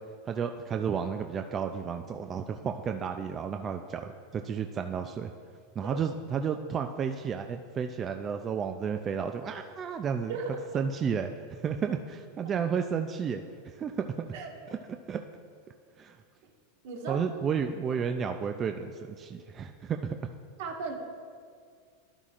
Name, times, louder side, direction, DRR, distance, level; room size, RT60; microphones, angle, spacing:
voice 1, 0.3-5.3 5.8-10.3 10.7-14.3 14.7-14.8 15.1-15.2 16.0-16.2 17.1-20.3, right 6 dB, 25° right, 6 dB, 0.4 m, -32 dB
voice 2, 10.3-10.6 14.3-14.7 16.8-17.2 20.6-21.0, right 4 dB, 70° right, 0 dB, 1.6 m, -36 dB
12.5 x 11.0 x 2.5 m, 2.1 s
supercardioid pair, 135°, 0 cm